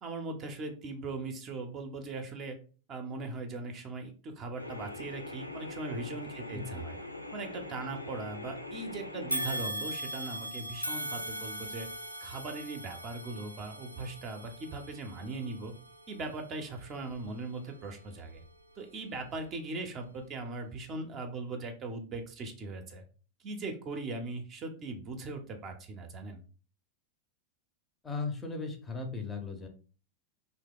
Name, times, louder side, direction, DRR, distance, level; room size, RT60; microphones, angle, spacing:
voice 1, 0.0-2.6 2.9-7.0 7.3-11.9 12.2-15.7 16.1-18.4 18.8-23.0 23.4-26.4, right 3 dB, 30° right, 4 dB, 0.5 m, -39 dB
sound 1, 4.6-9.6, left 2 dB, 85° left, 0.3 m, -42 dB
sound 2, 9.3-18.6 19.1-19.3 20.3-20.4, right 1 dB, 90° right, 0.3 m, -40 dB
voice 2, 28.0-29.7, left 4 dB, 15° left, 4 dB, 0.5 m, -37 dB
2.8 x 2.1 x 3.6 m, 0.38 s
figure-of-eight pair, 90°, 0 cm